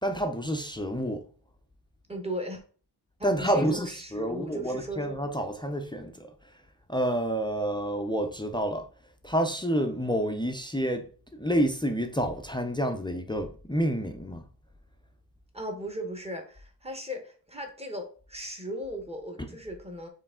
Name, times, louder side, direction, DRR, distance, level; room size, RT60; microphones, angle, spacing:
voice 1, 0.0-1.2 3.2-6.3 6.9-8.8 9.2-11.1 11.3-14.4, right 1 dB, 10° left, 0.4 m, -29 dB
voice 2, 2.1-2.6 3.2-5.1 15.5-20.1, equal, 15° right, 0.8 m, -37 dB
4.7 x 3.1 x 3.6 m
wide cardioid pair, 150°, 43 cm